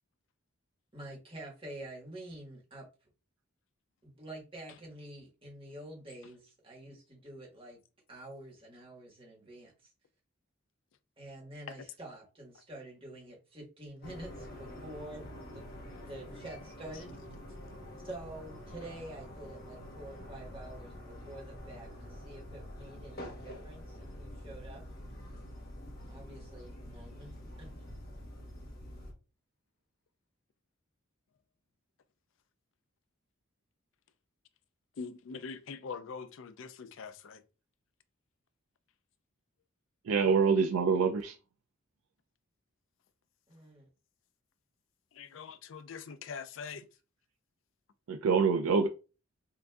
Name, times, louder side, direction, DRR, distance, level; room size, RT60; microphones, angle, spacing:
voice 1, 0.9-2.9 4.0-7.8 8.1-9.9 11.2-15.6 16.1-17.1 18.0-24.8 26.1-27.3 27.6-27.7 43.5-43.9, right 1 dB, 25° right, 1.3 m, -47 dB
sound 1, 14.0-29.1, equal, 45° left, 1.0 m, -47 dB
voice 2, 35.0-37.4 45.1-46.8, left 5 dB, 65° left, 0.4 m, -43 dB
voice 3, 40.0-41.4 48.1-48.9, right 5 dB, 85° right, 0.4 m, -26 dB
5.6 x 2.6 x 2.3 m
head